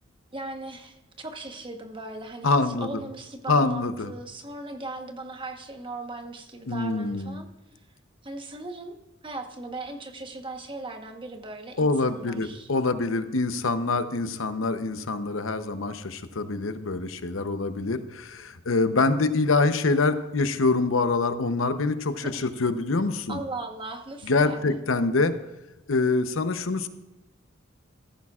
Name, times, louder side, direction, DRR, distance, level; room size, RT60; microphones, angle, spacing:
voice 1, 0.3-7.5 8.2-9.0 9.2-12.7 22.2-22.5 23.3-24.8, right 2 dB, 25° right, 5 dB, 1.1 m, -38 dB
voice 2, 2.4-2.9 3.5-4.1 6.7-7.4 11.8-23.4 24.3-25.3 25.9-26.9, left 3 dB, 80° left, 9 dB, 0.8 m, -25 dB
15.5 x 14.0 x 2.4 m, 1.0 s
head